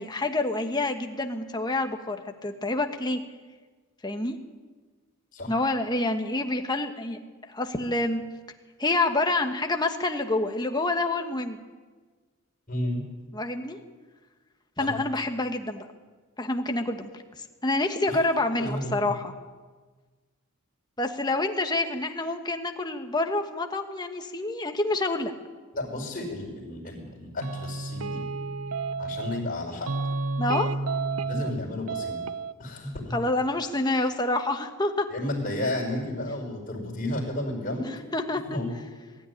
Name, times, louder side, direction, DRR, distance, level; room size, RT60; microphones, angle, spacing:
voice 1, 0.0-3.2 4.0-4.4 5.5-7.2 7.5-8.2 8.8-11.6 13.3-13.8 14.8-15.9 16.4-17.1 17.6-19.3 21.0-25.3 30.4-30.7 33.1-35.1 37.8-38.6, left 2 dB, 20° left, 5 dB, 1.3 m, -27 dB
voice 2, 12.7-13.0 14.8-15.0 18.1-18.2 18.6-19.1 25.7-28.2 29.0-29.9 31.2-32.2 32.6-33.2 35.1-37.9 38.4-38.7, left 1 dB, 40° left, 0 dB, 5.7 m, -32 dB
sound 1, 27.4-29.5 29.9-31.6 31.9-32.5, right 3 dB, 80° right, 0.8 m, -31 dB
21.5 x 13.5 x 10.0 m, 1.4 s
head